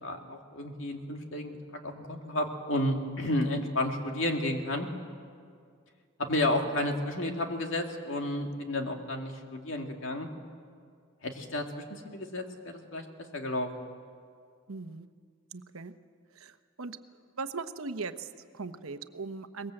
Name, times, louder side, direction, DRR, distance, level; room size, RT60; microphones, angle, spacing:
voice 1, 0.0-4.9 6.2-10.3 11.2-13.1 13.3-13.7, left 1 dB, 65° left, 3 dB, 2.2 m, -32 dB
voice 2, 14.7-15.1 15.5-15.9 16.3-17.0 17.3-19.7, right 4 dB, 85° right, 9 dB, 1.0 m, -39 dB
23.0 x 20.5 x 7.8 m, 2.1 s
head